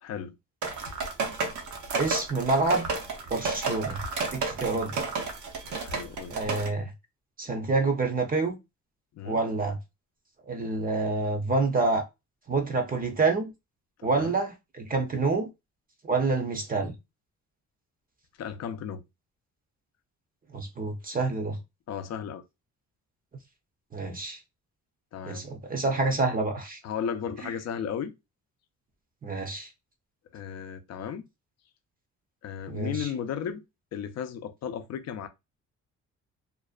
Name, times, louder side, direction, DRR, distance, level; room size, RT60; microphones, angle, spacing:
voice 1, 0.0-0.4 5.8-6.4 9.1-9.4 14.0-14.4 18.4-19.0 21.9-22.4 25.1-25.4 26.8-28.1 30.3-31.2 32.4-33.6 33.9-35.3, left 8 dB, 60° left, 0.5 m, -35 dB
sound 1, 0.6-6.7, right 4 dB, 75° right, 0.7 m, -32 dB
voice 2, 2.0-2.9 3.3-4.0 4.3-5.0 6.3-6.9 7.4-8.6 9.2-9.8 10.5-12.0 12.5-13.5 14.0-15.5 16.0-16.9 20.5-21.6 23.9-24.4 25.3-26.8 29.2-29.7 32.7-33.1, right 3 dB, 30° right, 0.6 m, -27 dB
2.5 x 2.1 x 2.4 m
cardioid pair, 90°, 30 cm